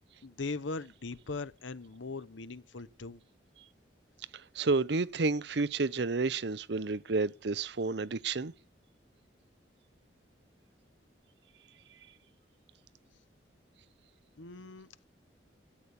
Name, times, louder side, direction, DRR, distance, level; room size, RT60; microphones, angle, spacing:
voice 1, 0.2-3.2 14.4-15.0, left 3 dB, 90° left, 0.9 m, -40 dB
voice 2, 4.5-8.5, right 3 dB, 65° right, 0.7 m, -30 dB
13.0 x 8.4 x 9.7 m
head